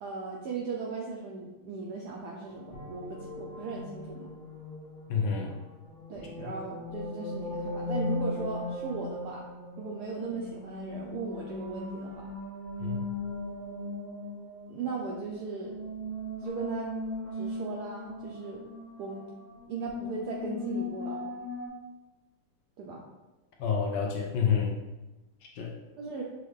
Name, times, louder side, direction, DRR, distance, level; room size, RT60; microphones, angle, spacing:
voice 1, 0.0-4.3 5.4-5.6 6.1-9.4 9.8-12.3 14.7-15.8 16.4-16.9 17.3-18.6 19.0-19.3 19.7-21.3 22.8-23.0 26.0-26.2, right 4 dB, 75° right, -2 dB, 0.9 m, -37 dB
sound 1, 2.5-21.7, left 2 dB, 50° left, 0.5 m, -38 dB
voice 2, 5.1-5.5 6.4-6.5 12.8-13.1 23.6-24.8 25.5-25.7, left 6 dB, 75° left, 0 dB, 1.2 m, -28 dB
6.4 x 2.3 x 3.2 m, 1.1 s
omnidirectional pair, 2.3 m